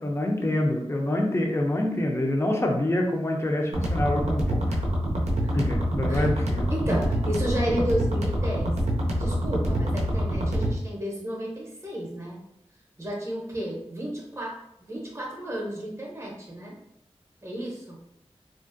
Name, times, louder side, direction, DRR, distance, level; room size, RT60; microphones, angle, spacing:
voice 1, 0.0-4.8 5.5-7.0, left 1 dB, 25° left, 1 dB, 0.5 m, -26 dB
sound 1, 3.7-10.7, equal, 85° right, 0.5 m, -26 dB
voice 2, 6.7-8.7 9.0-12.4 13.0-14.5 14.8-16.8 17.4-18.0, right 1 dB, 25° right, -3 dB, 0.7 m, -32 dB
2.4 x 2.1 x 2.5 m, 0.80 s
wide cardioid pair, 45°, 11 cm